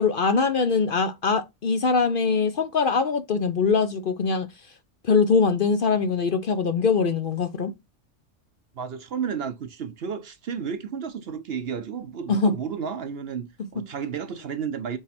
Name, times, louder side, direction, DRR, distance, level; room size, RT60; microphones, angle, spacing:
voice 1, 0.0-4.7 5.0-7.7 12.3-12.6 13.8-13.9, left 5 dB, 50° left, 0.7 m, -22 dB
voice 2, 8.8-15.0, right 7 dB, 60° right, 0.8 m, -32 dB
8.4 x 3.2 x 4.2 m
omnidirectional pair, 1.3 m